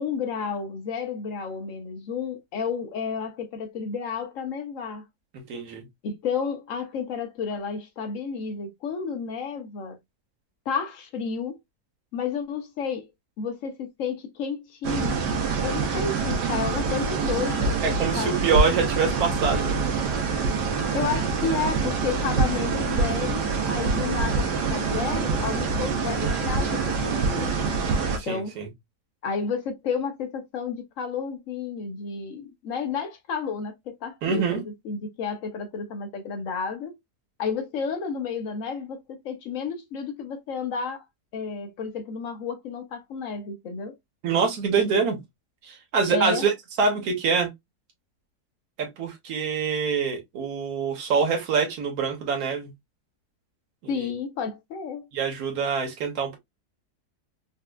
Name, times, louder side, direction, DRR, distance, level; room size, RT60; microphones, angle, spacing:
voice 1, 0.0-5.0 6.0-10.0 10.7-11.6 12.1-13.1 13.4-15.2 15.6-17.8 18.1-18.4 20.9-27.8 28.2-28.5 29.2-37.0 37.4-41.1 41.3-43.9 46.1-46.5 53.9-55.1, left 6 dB, 60° left, 1.0 m, -31 dB
voice 2, 5.5-5.8 17.8-19.8 28.2-28.7 34.2-34.6 44.2-45.2 45.6-46.5 46.8-47.5 48.8-52.7 53.8-54.1 55.1-56.4, right 5 dB, 65° right, 1.4 m, -25 dB
sound 1, 14.8-28.2, right 4 dB, 80° right, 1.3 m, -25 dB
4.2 x 2.3 x 2.3 m
omnidirectional pair, 1.8 m